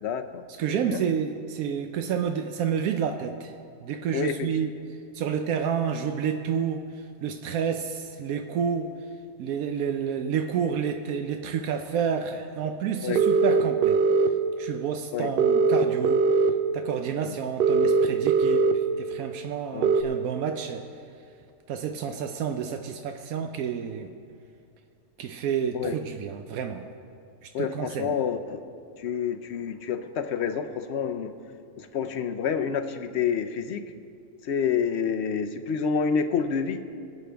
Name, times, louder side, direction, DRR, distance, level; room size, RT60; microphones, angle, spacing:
voice 1, 0.0-0.4 0.7-1.0 4.1-4.5 13.0-13.2 15.1-15.3 17.2-17.3 19.7-19.9 25.7-26.0 27.5-28.6 29.0-31.3 31.8-33.8 34.5-36.8, left 6 dB, 60° left, 9 dB, 0.8 m, -28 dB
voice 2, 0.6-3.5 3.8-4.7 5.1-6.8 7.2-8.9 9.4-14.0 14.6-16.3 16.7-20.9 21.7-24.1 25.2-26.8 27.4-28.2, right 7 dB, 90° right, 6 dB, 1.1 m, -29 dB
sound 1, 13.2-14.3 15.4-16.5 17.6-18.7 19.8-20.0, right 4 dB, 65° right, 0.6 m, -20 dB
23.0 x 8.3 x 3.4 m, 2.4 s
omnidirectional pair, 1.4 m